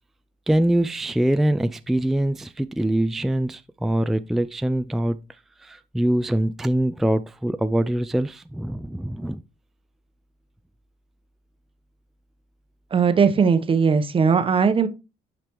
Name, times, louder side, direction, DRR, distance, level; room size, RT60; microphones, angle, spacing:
voice 1, 0.5-5.2 5.6-9.4, right 1 dB, ahead, 0.3 m, -23 dB
voice 2, 12.9-14.9, right 6 dB, 30° right, 0.9 m, -19 dB
9.2 x 5.0 x 3.0 m
cardioid pair, 110°, 17 cm